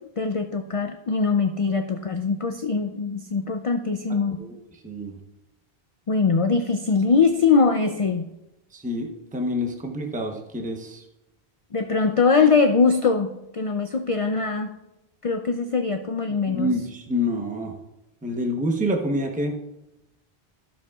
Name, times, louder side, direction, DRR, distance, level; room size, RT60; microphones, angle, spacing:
voice 1, 0.2-4.4 6.1-8.3 11.7-14.7 15.2-16.7, left 4 dB, 45° left, 6 dB, 0.4 m, -22 dB
voice 2, 4.4-5.2 8.7-11.0 16.4-17.8 18.2-19.6, equal, 10° right, 2 dB, 0.8 m, -27 dB
13.5 x 7.2 x 2.4 m, 0.92 s
omnidirectional pair, 1.1 m